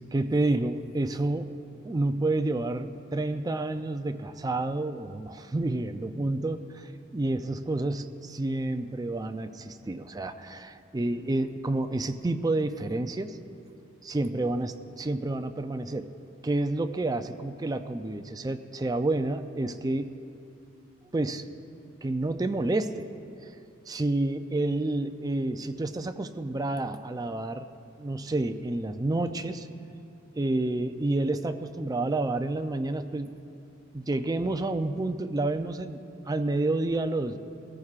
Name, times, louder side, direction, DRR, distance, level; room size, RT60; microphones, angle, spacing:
voice 1, 0.1-1.5 1.8-13.4 14.0-16.1 16.4-20.1 21.1-21.4 22.0-23.0 23.4-23.5 23.9-27.7 28.0-29.7 30.4-33.3 33.9-37.4, right 2 dB, 20° right, 8 dB, 0.4 m, -29 dB
20.5 x 14.0 x 2.4 m, 2.7 s
head